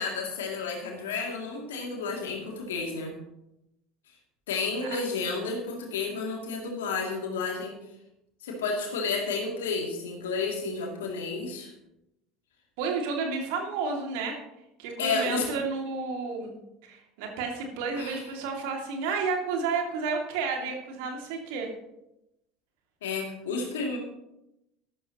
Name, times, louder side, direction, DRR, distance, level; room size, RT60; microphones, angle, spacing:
voice 1, 0.0-3.1 4.5-7.8 8.4-11.7 15.0-15.5 18.0-18.2 23.0-24.0, left 4 dB, 70° left, 0 dB, 2.6 m, -31 dB
voice 2, 12.8-14.4 14.8-21.7, right 4 dB, 60° right, 2 dB, 2.4 m, -31 dB
13.0 x 13.0 x 3.0 m, 0.88 s
figure-of-eight pair, 65°, 0 cm